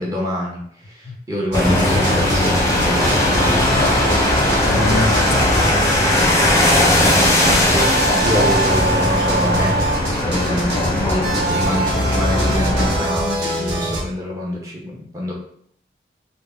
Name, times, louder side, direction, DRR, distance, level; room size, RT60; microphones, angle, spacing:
voice 1, 0.0-2.9 7.0-15.3, left 1 dB, 20° right, 0.7 m, -26 dB
sound 1, 1.5-13.0, left 1 dB, 15° left, 0.5 m, -18 dB
sound 2, 1.5-14.0, right 1 dB, 85° right, 1.1 m, -23 dB
voice 2, 3.7-4.1 4.7-6.4, left 2 dB, 75° left, 0.4 m, -26 dB
3.5 x 2.1 x 3.4 m
head